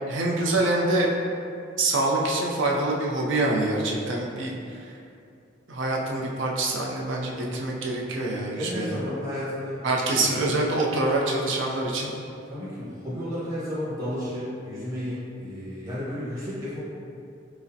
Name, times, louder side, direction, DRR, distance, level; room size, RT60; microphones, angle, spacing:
voice 1, 0.1-1.1 1.8-4.9 5.7-9.0 9.8-12.1, right 2 dB, 80° right, -1 dB, 0.5 m, -25 dB
voice 2, 8.4-10.3 12.5-16.8, equal, 15° right, -11 dB, 1.2 m, -33 dB
6.1 x 2.1 x 2.7 m, 2.5 s
head